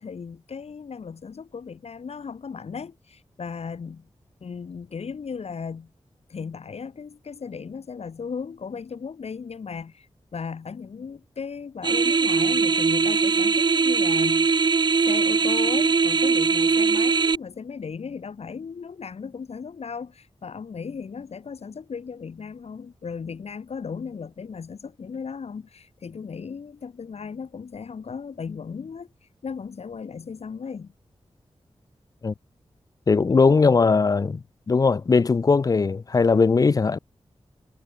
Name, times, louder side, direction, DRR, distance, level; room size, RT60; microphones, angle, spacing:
voice 1, 0.0-4.1 4.4-5.9 6.3-14.5 15.1-29.1 29.4-30.9, left 6 dB, 75° left, 1.7 m, -36 dB
sound 1, 11.8-17.3, right 5 dB, 40° right, 0.5 m, -21 dB
voice 2, 33.1-34.4 34.7-37.0, left 4 dB, 35° left, 0.4 m, -19 dB
wide cardioid pair, 115°, 11 cm